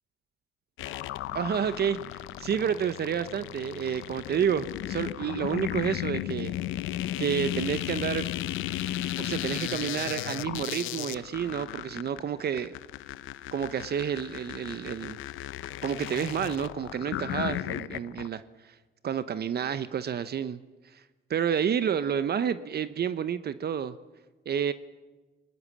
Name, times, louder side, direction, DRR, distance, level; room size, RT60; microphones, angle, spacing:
sound 1, 0.8-18.3, left 14 dB, 90° left, 0.7 m, -35 dB
voice 1, 1.3-6.5 7.2-8.3 9.2-12.7 13.5-15.2 15.8-18.7 19.0-20.6 20.9-21.0 21.3-24.0 24.5-24.7, right 8 dB, 55° right, 13 dB, 0.9 m, -30 dB
28.5 x 19.5 x 7.4 m, 1.3 s
cardioid pair, 90°, 20 cm